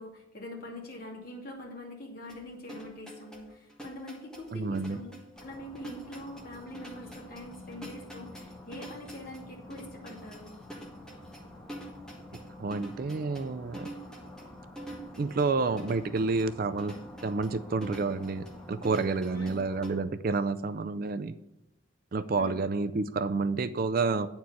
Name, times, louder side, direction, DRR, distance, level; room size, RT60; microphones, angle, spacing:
voice 1, 0.0-5.1 5.4-10.6 19.3-19.6 22.3-22.7, left 1 dB, 45° left, -1 dB, 2.4 m, -44 dB
sound 1, 2.3-19.9, right 1 dB, 5° left, 1.4 m, -46 dB
voice 2, 4.5-5.0 12.6-13.9 15.2-16.9 17.2-21.3 22.1-24.3, right 4 dB, 45° right, 11 dB, 0.4 m, -29 dB
sound 2, 5.3-20.0, left 1 dB, 25° left, 1.7 m, -49 dB
9.4 x 4.4 x 7.4 m, 0.86 s
head